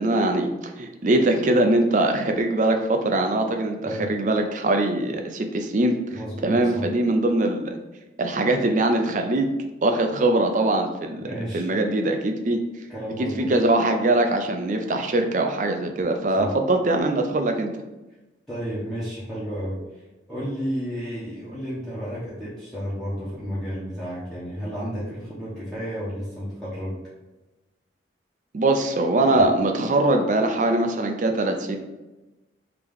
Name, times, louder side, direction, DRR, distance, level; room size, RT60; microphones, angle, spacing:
voice 1, 0.0-7.7 8.2-9.5 9.8-11.3 11.5-12.6 13.2-17.7 28.5-31.8, right 2 dB, 40° right, 5 dB, 0.4 m, -22 dB
voice 2, 6.1-6.9 11.2-11.7 12.9-13.5 16.4-16.5 18.5-19.8 20.3-27.0, equal, ahead, -11 dB, 0.9 m, -32 dB
3.5 x 2.9 x 3.5 m, 1.1 s
head